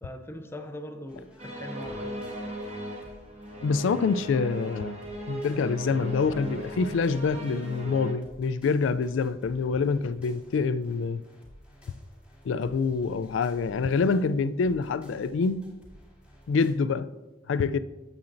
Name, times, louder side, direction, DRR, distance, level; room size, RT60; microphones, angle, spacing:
voice 1, 0.0-2.3 2.9-3.0, left 1 dB, 15° left, 0.5 m, -41 dB
sound 1, 1.1-16.7, equal, 5° right, 2.5 m, -54 dB
sound 2, 1.4-8.1, equal, 35° right, 1.1 m, -37 dB
voice 2, 3.6-5.0 5.3-11.2 12.4-15.7 16.5-17.1 17.5-17.8, left 4 dB, 75° left, 0.3 m, -26 dB
8.6 x 7.8 x 2.6 m
head